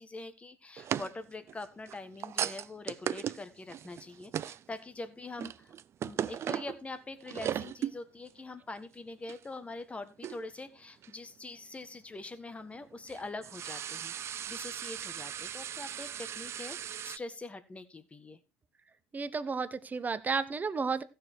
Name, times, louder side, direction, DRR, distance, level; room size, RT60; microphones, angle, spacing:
voice 1, 0.0-5.7 6.0-14.1 14.5-16.8 17.0-18.4, left 2 dB, 20° left, 12 dB, 1.6 m, -44 dB
sound 1, 0.8-4.8 5.2-6.8 7.2-8.0 8.3-8.4 9.3-9.4 10.2-10.6 11.0-11.1 12.7-17.2, right 10 dB, 40° right, 0.5 m, -37 dB
voice 2, 19.1-21.0, right 5 dB, 25° right, 14 dB, 1.1 m, -32 dB
15.0 x 6.8 x 4.6 m, 0.31 s
hypercardioid pair, 80°, 7 cm